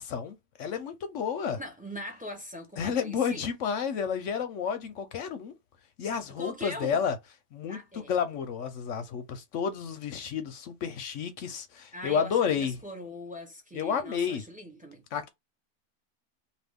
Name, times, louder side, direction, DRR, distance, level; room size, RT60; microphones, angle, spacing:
voice 1, 0.0-1.6 2.8-5.5 6.0-7.2 7.5-12.8 13.7-14.4 15.1-15.3, left 7 dB, 65° left, 0.8 m, -31 dB
voice 2, 1.6-3.5 6.4-7.0 7.7-8.1 11.9-15.0, left 1 dB, 10° right, 0.6 m, -41 dB
2.6 x 2.5 x 3.5 m
omnidirectional pair, 1.5 m